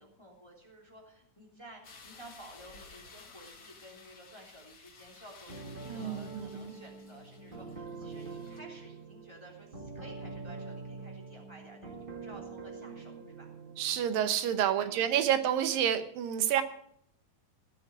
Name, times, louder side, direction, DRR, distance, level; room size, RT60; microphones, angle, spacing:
voice 1, 0.0-13.5 14.8-15.4, right 1 dB, 10° left, 0 dB, 2.5 m, -53 dB
sound 1, 1.8-8.6, left 4 dB, 45° left, 1.2 m, -55 dB
sound 2, 5.5-14.0, right 4 dB, 20° right, 1.6 m, -45 dB
voice 2, 5.9-6.8 13.8-16.6, right 10 dB, 80° right, 10 dB, 2.6 m, -29 dB
16.5 x 7.1 x 8.7 m, 0.69 s
omnidirectional pair, 4.0 m